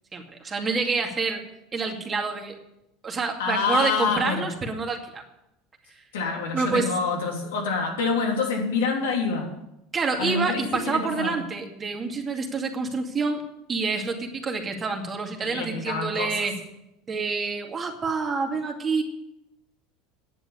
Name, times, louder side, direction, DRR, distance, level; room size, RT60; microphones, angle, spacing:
voice 1, 0.1-1.4 1.7-2.6 3.0-5.2 6.5-6.9 9.9-16.6 17.1-19.0, right 4 dB, 30° right, 2 dB, 2.4 m, -27 dB
voice 2, 3.4-4.5 6.1-9.6 10.2-11.4 15.4-16.5, left 4 dB, 90° left, 0 dB, 3.4 m, -27 dB
10.5 x 7.6 x 9.4 m, 0.86 s
supercardioid pair, 100°, 0 cm